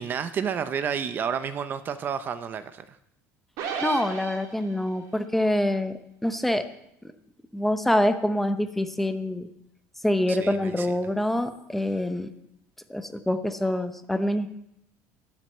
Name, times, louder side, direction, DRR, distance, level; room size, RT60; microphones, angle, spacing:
voice 1, 0.0-3.0 10.3-11.0, right 7 dB, 30° right, 12 dB, 0.6 m, -30 dB
sound 1, 3.6-5.0, right 6 dB, 65° right, 3.3 m, -33 dB
voice 2, 3.8-5.9 6.2-6.6 7.5-9.5 10.0-12.3 12.9-14.5, left 1 dB, 5° left, 8 dB, 0.8 m, -25 dB
12.0 x 9.3 x 7.9 m, 0.80 s
cardioid pair, 160°, 6 cm